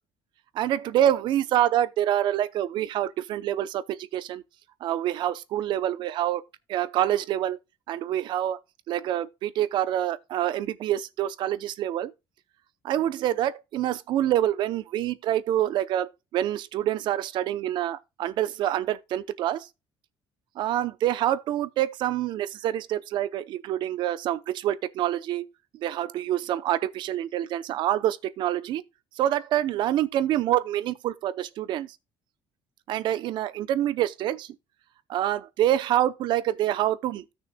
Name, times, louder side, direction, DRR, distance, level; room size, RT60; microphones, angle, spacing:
voice 1, 0.6-4.4 4.8-6.4 6.7-7.6 7.9-8.6 8.9-12.1 12.8-19.7 20.6-25.5 25.8-28.8 29.2-31.9 32.9-34.5 35.1-37.2, right 12 dB, 60° right, 0.6 m, -26 dB
16.5 x 6.3 x 2.2 m
cardioid pair, 155°, 9 cm